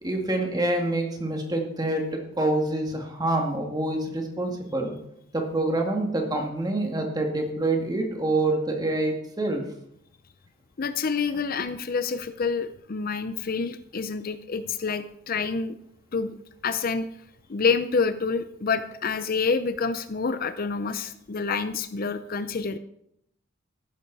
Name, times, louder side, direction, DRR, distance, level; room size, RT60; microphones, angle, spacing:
voice 1, 0.0-2.0 2.4-4.9 5.3-9.6, right 2 dB, 20° right, 2 dB, 2.1 m, -26 dB
voice 2, 10.8-15.8 16.1-16.3 16.6-17.1 17.5-22.8, left 5 dB, 45° left, 11 dB, 0.6 m, -27 dB
14.0 x 12.0 x 4.1 m, 0.77 s
head